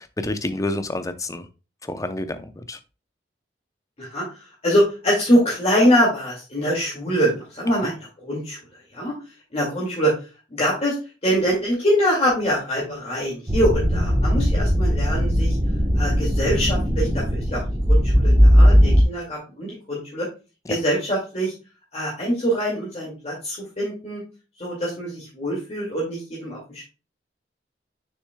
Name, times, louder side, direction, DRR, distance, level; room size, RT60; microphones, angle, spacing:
voice 1, 0.0-1.5 1.8-2.8 7.8-7.9 20.7-20.8, left 2 dB, 20° left, 0.6 m, -29 dB
voice 2, 4.6-8.6 8.9-9.1 9.5-10.1 10.5-11.0 11.2-15.6 15.9-17.6 17.9-20.3 20.7-21.5 21.9-24.2 24.6-26.8, equal, 35° left, 2.1 m, -23 dB
sound 1, 13.5-19.0, equal, 25° right, 1.0 m, -18 dB
6.6 x 6.4 x 2.2 m
head